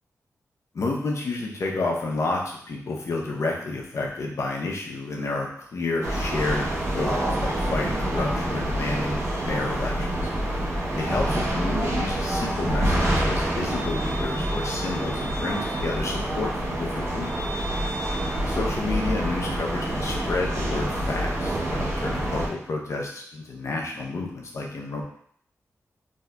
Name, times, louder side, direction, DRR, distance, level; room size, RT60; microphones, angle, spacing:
voice 1, 0.7-10.1 11.0-17.5 18.5-25.0, left 3 dB, 65° left, -1 dB, 0.7 m, -30 dB
sound 1, 6.0-22.5, right 1 dB, 55° right, 0.9 m, -27 dB
3.6 x 2.7 x 2.2 m, 0.63 s
wide cardioid pair, 90°, 5 cm